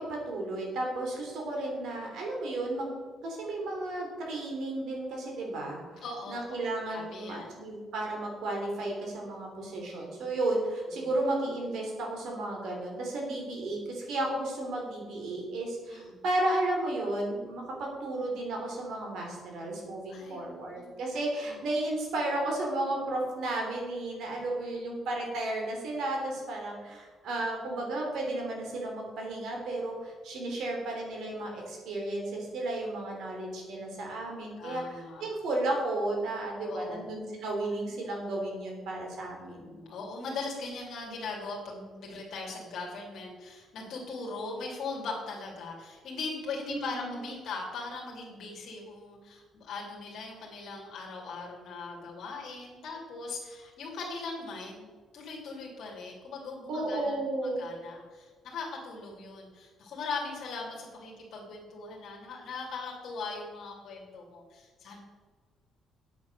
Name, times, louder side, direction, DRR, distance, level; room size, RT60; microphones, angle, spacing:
voice 1, 0.0-39.7 46.7-47.4 56.7-57.6, right 2 dB, 70° right, 0 dB, 3.3 m, -33 dB
voice 2, 6.0-7.5 10.9-11.1 15.9-16.2 20.1-21.1 21.5-21.6 24.4-24.5 34.6-35.2 36.6-37.1 39.5-57.2 57.6-65.0, left 3 dB, 60° left, -2 dB, 2.6 m, -40 dB
9.5 x 7.8 x 6.5 m, 1.5 s
cardioid pair, 160°, 0 cm